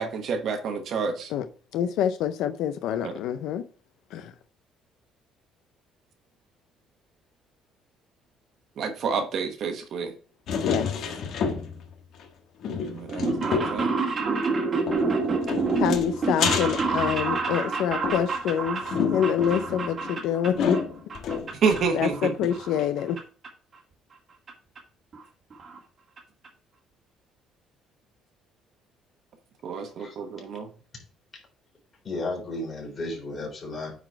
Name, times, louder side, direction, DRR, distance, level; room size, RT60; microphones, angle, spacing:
voice 1, 0.0-1.3 3.0-3.1 8.8-10.1 12.9-13.9 21.6-22.3 29.6-30.7, right 5 dB, 50° right, 1.1 m, -28 dB
voice 2, 1.7-3.6 4.1-4.3 10.6-10.9 15.8-20.8 21.9-23.2, left 9 dB, 75° left, 0.5 m, -26 dB
sound 1, 10.5-11.9 12.2-12.3 12.6-13.9 14.9-17.6 18.0-22.1 22.4-22.5 22.8-22.9, left 6 dB, 55° left, 1.3 m, -30 dB
sound 2, 13.1-20.8 21.1-21.8 22.1-23.2 23.4-23.5 24.5-24.6 24.8-24.9 25.1-25.2 25.5-25.8 26.2-26.3 26.4-26.5, right 4 dB, 30° right, 1.5 m, -28 dB
voice 3, 32.0-33.9, left 2 dB, 30° left, 3.6 m, -33 dB
9.2 x 4.1 x 4.4 m
cardioid pair, 160°, 0 cm